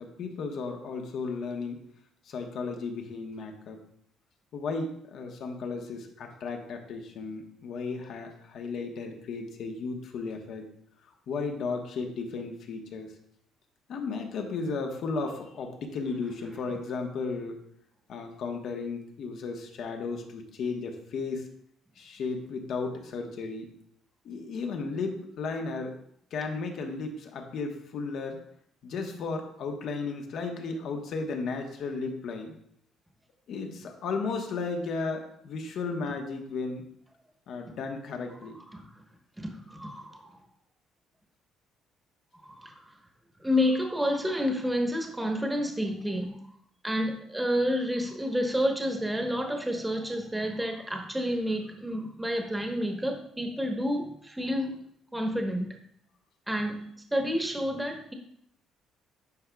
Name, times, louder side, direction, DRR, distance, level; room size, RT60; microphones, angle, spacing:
voice 1, 0.0-1.8 2.2-3.8 4.5-10.7 11.0-13.1 13.9-17.6 18.1-21.5 22.0-23.7 24.2-26.0 26.3-28.4 28.8-32.5 33.5-36.9 37.5-38.6, left 4 dB, 65° left, 3 dB, 1.1 m, -34 dB
voice 2, 38.7-39.0 39.4-40.3 42.4-42.9 43.4-46.4 46.8-54.7 55.1-55.8 56.5-58.1, equal, 10° right, 3 dB, 1.1 m, -29 dB
10.5 x 4.7 x 2.3 m, 0.69 s
cardioid pair, 90°, 0 cm